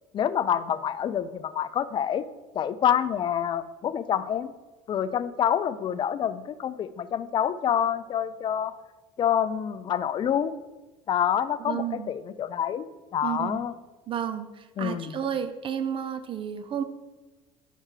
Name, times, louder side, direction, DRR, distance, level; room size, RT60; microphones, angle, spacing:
voice 1, 0.1-2.2 2.5-4.5 4.9-8.7 9.2-10.5 11.1-12.9 13.1-13.7 14.8-15.2, left 9 dB, 40° left, 15 dB, 0.4 m, -27 dB
voice 2, 11.6-12.1 13.2-13.6 14.1-16.8, right 9 dB, 40° right, 10 dB, 0.5 m, -32 dB
4.9 x 4.5 x 4.5 m, 1.2 s
supercardioid pair, 90°, 13 cm